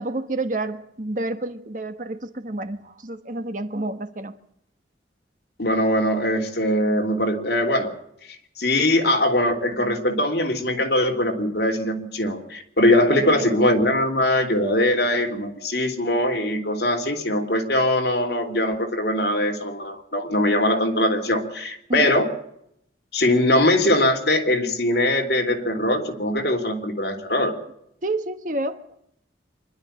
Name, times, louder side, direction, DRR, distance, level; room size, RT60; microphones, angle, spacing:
voice 1, 0.0-4.4 13.1-13.6 21.9-22.1 28.0-28.9, right 2 dB, 45° right, 1.3 m, -29 dB
voice 2, 5.6-7.9 8.6-22.3 23.1-27.5, left 1 dB, 60° left, 3.1 m, -21 dB
25.0 x 12.0 x 8.8 m
head